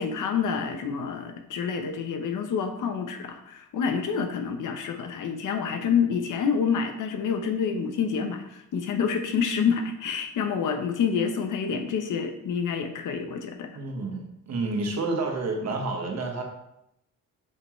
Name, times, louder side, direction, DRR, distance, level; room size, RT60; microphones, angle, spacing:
voice 1, 0.0-13.7, left 6 dB, 90° left, 6 dB, 0.9 m, -28 dB
voice 2, 13.7-16.4, right 3 dB, 60° right, 2 dB, 1.5 m, -29 dB
7.6 x 5.8 x 3.2 m, 0.81 s
wide cardioid pair, 145°, 30 cm